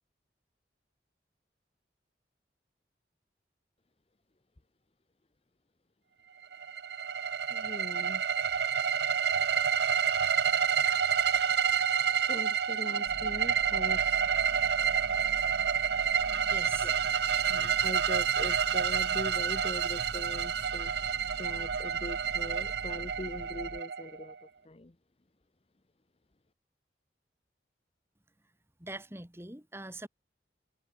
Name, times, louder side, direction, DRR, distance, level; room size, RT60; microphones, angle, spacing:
sound 1, 6.5-24.3, right 7 dB, 70° right, 0.6 m, -29 dB
voice 1, 7.5-8.2 12.3-14.0 15.0-15.7 16.2-16.5 16.8-16.9 17.5-20.9 21.3-24.4 24.6-24.9, left 1 dB, 35° left, 0.8 m, -42 dB
sound 2, 13.0-23.8, right 1 dB, 30° right, 1.7 m, -46 dB
voice 2, 16.5-16.9 28.8-30.1, right 2 dB, 15° right, 2.2 m, -43 dB
head